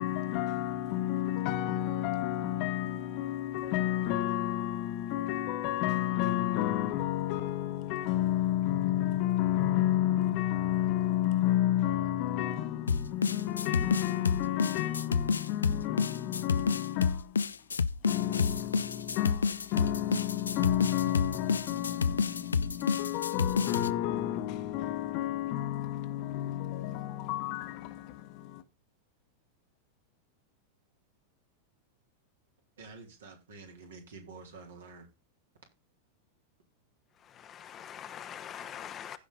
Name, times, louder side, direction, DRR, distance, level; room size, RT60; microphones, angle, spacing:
voice 1, 0.0-17.5 18.0-28.6, left 13 dB, 45° left, 1.3 m, -31 dB
sound 1, 12.9-23.9, left 5 dB, 75° left, 0.5 m, -29 dB
voice 2, 32.8-35.1, right 4 dB, 65° right, 3.5 m, -49 dB
voice 3, 37.2-39.2, left 9 dB, 25° left, 1.0 m, -43 dB
16.0 x 5.4 x 3.9 m
figure-of-eight pair, 90°, 0 cm